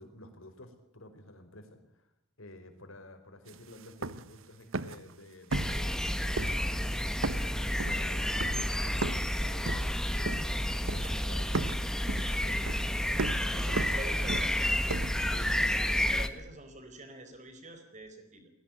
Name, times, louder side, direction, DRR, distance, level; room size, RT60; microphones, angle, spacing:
voice 1, 0.0-2.1 2.4-11.7 12.4-13.7 15.3-15.8, left 1 dB, 75° left, 6 dB, 5.0 m, -51 dB
sound 1, 3.5-3.6 3.8-4.4 4.7-5.1 5.5-6.1 6.4-6.9 7.2-9.3 9.7-10.6 10.9-11.3 11.5-15.6, right 3 dB, 70° right, 1.0 m, -36 dB
sound 2, 5.5-16.3, left 1 dB, 5° left, 1.3 m, -30 dB
voice 2, 13.5-14.8 15.7-18.5, right 1 dB, 35° right, 8 dB, 4.6 m, -45 dB
21.0 x 17.5 x 9.2 m, 0.83 s
head